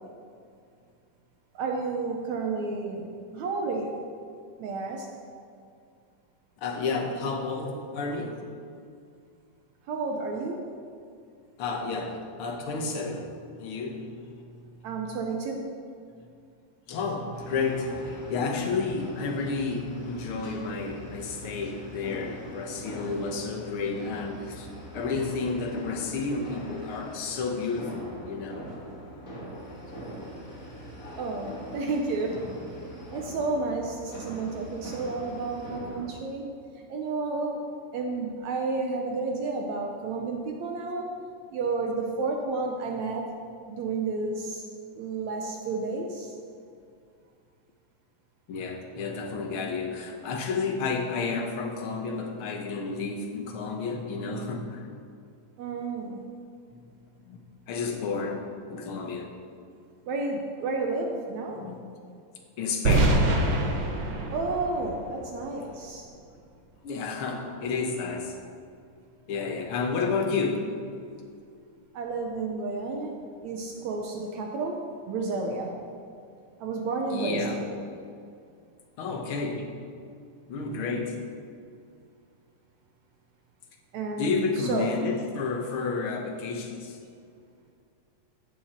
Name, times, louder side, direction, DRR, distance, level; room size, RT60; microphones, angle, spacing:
voice 1, 1.6-4.0 4.6-5.1 9.9-10.6 14.8-15.7 31.2-32.4 32.9-36.5 36.9-37.6 37.9-41.1 41.5-43.3 43.7-44.6 45.0-46.3 55.6-56.2 60.1-61.6 64.3-66.1 71.9-73.2 73.4-74.8 75.1-75.7 76.6-77.8 83.9-84.9, right 3 dB, 70° right, 1 dB, 1.9 m, -31 dB
voice 2, 6.6-8.4 11.6-13.3 13.6-14.6 16.9-24.7 24.9-28.6 48.5-54.9 56.7-56.8 57.2-57.4 57.7-58.4 58.7-59.3 61.5-61.8 62.6-63.2 66.8-68.3 69.3-70.6 77.1-77.6 79.0-79.7 80.5-81.1 84.2-87.0, left 4 dB, 60° left, 1 dB, 1.5 m, -31 dB
sound 1, 17.3-36.1, equal, 30° left, 1.9 m, -42 dB
sound 2, 62.8-65.8, right 2 dB, 90° right, 0.9 m, -25 dB
15.5 x 7.2 x 4.4 m, 2.4 s
omnidirectional pair, 3.9 m